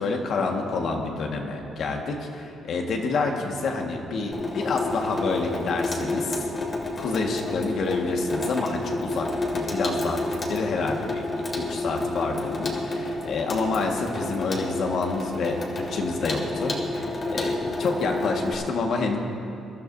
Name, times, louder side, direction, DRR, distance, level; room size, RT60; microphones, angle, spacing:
voice 1, 0.0-6.5 7.0-11.2 11.5-19.2, left 3 dB, 65° left, 1 dB, 1.6 m, -28 dB
Water tap faucet / Sink (filling or washing), 4.3-18.5, left 2 dB, 40° left, 2.3 m, -30 dB
22.5 x 12.0 x 2.7 m, 2.7 s
cardioid pair, 90°, 0 cm